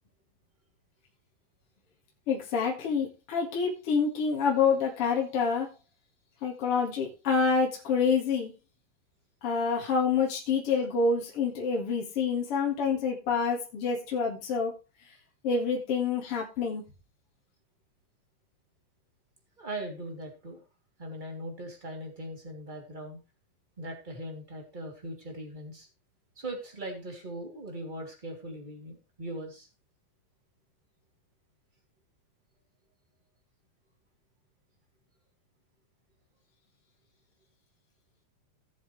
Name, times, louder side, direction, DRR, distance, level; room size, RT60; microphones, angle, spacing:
voice 1, 2.3-5.7 6.4-8.5 9.4-14.7 15.4-16.8, left 5 dB, 45° left, -2 dB, 2.5 m, -27 dB
voice 2, 19.6-20.6 21.0-23.2 23.8-25.9 26.4-29.7, right 1 dB, 15° right, 1 dB, 2.5 m, -40 dB
17.5 x 7.2 x 3.3 m, 0.28 s
omnidirectional pair, 4.0 m